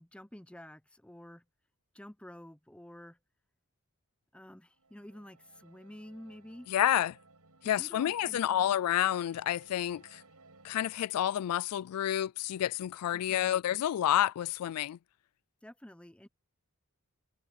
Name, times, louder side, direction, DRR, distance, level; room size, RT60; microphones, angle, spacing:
voice 1, 0.0-1.4 1.9-3.2 4.3-6.7 7.6-8.7 13.1-13.6 15.6-16.3, left 1 dB, 5° left, 0.6 m, -50 dB
sound 1, 4.7-11.1, right 3 dB, 85° right, 5.6 m, -60 dB
voice 2, 6.7-7.2 7.6-10.2 10.6-15.0, left 11 dB, 80° left, 0.3 m, -29 dB
head